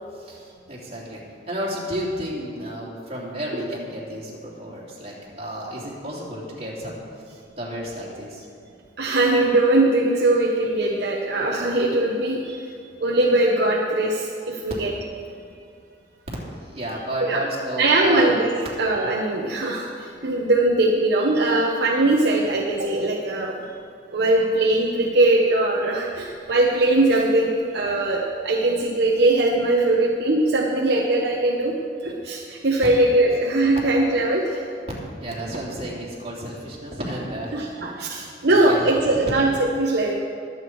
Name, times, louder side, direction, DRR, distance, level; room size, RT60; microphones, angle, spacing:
voice 1, 0.1-8.4 16.5-18.4 35.2-38.1 38.5-39.3, right 1 dB, 35° right, -4 dB, 3.3 m, -32 dB
voice 2, 9.0-12.6 13.0-14.9 17.2-17.4 17.8-18.5 18.8-23.7 24.1-34.6 37.5-40.1, right 2 dB, 65° right, -1 dB, 1.0 m, -21 dB
21.5 x 8.3 x 4.7 m, 2.5 s
head